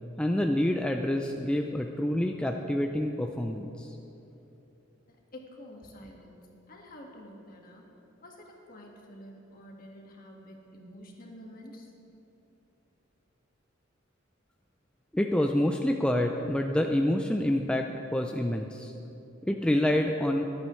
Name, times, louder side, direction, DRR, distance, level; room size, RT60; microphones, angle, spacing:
voice 1, 0.2-4.0 15.1-18.9 19.4-20.4, left 1 dB, 5° left, 3 dB, 0.4 m, -27 dB
voice 2, 5.1-7.9 8.2-12.0, left 1 dB, 45° left, 0 dB, 1.7 m, -49 dB
23.0 x 8.7 x 3.1 m, 2.9 s
head